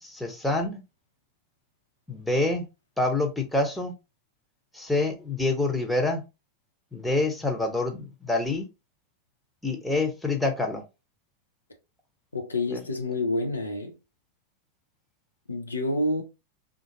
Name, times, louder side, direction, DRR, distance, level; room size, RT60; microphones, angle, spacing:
voice 1, 0.0-0.8 2.1-2.7 3.0-3.9 4.7-6.3 6.9-8.7 9.6-10.8 12.7-12.8, left 2 dB, 5° left, 0.8 m, -26 dB
voice 2, 12.3-14.0 15.5-16.2, left 1 dB, 80° left, 0.6 m, -28 dB
3.7 x 2.5 x 2.6 m
figure-of-eight pair, 90°, 0 cm